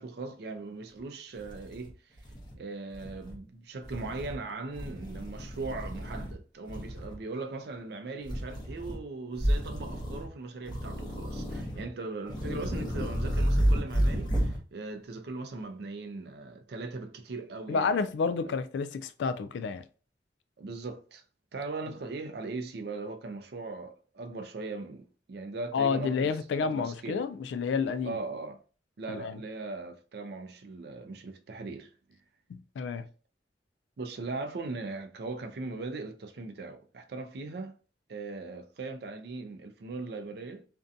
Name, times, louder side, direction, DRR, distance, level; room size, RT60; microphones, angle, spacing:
voice 1, 0.0-1.9 2.6-18.0 18.4-18.6 20.6-21.2 21.5-26.3 26.6-27.3 28.0-28.6 29.0-31.9 34.0-37.7 38.1-40.6, right 3 dB, 65° right, 0.4 m, -39 dB
sound 1, 1.0-1.1 1.4-2.5 2.9-3.4 3.8-4.4 4.7-6.4 6.7-7.2 8.2-9.0 9.3-10.3 10.7-11.9 12.2-14.6, equal, 25° left, 0.7 m, -31 dB
voice 2, 17.7-19.8 25.7-28.2 29.1-29.4 32.5-33.1, left 5 dB, 85° left, 0.3 m, -30 dB
2.5 x 2.2 x 2.6 m
head